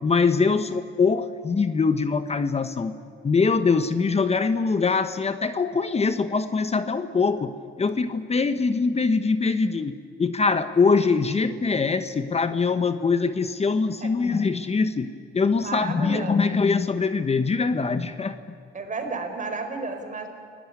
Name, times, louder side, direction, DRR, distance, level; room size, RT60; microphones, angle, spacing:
voice 1, 0.0-3.0 3.2-7.5 7.8-9.9 10.2-18.4, left 4 dB, 30° left, 11 dB, 1.2 m, -23 dB
voice 2, 15.6-16.4 18.7-20.3, right 4 dB, 40° right, 6 dB, 4.7 m, -32 dB
28.5 x 18.0 x 9.7 m, 2.3 s
cardioid pair, 90°, 20 cm